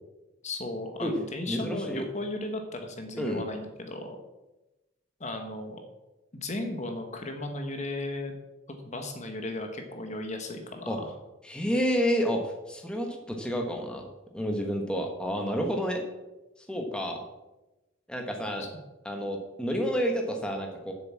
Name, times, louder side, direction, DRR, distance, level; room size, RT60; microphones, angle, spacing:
voice 1, 0.4-4.2 5.2-5.8 6.3-8.3 8.7-11.1 18.6-18.7, left 2 dB, 35° left, 5 dB, 1.2 m, -35 dB
voice 2, 1.5-2.0 3.2-3.4 10.9-11.0 11.4-14.0 14.3-16.0 16.7-17.2 18.1-18.6 19.0-20.9, equal, 5° left, 2 dB, 1.2 m, -29 dB
7.7 x 7.4 x 7.4 m, 1.0 s
head